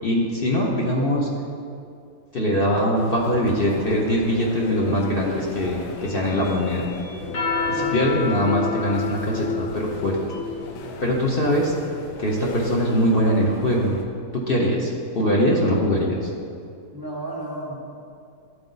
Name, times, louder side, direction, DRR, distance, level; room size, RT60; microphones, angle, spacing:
voice 1, 0.0-1.3 2.3-6.8 7.7-10.2 11.0-11.7 12.2-14.0 14.3-16.3, equal, 45° left, -3 dB, 0.8 m, -22 dB
sound 1, 2.9-14.0, left 4 dB, 80° left, 1.3 m, -38 dB
sound 2, 7.2-12.0, left 4 dB, 65° left, 2.3 m, -29 dB
voice 2, 7.7-8.0 16.9-18.0, right 1 dB, 30° right, -3 dB, 0.4 m, -33 dB
12.0 x 4.6 x 3.9 m, 2.4 s
omnidirectional pair, 1.9 m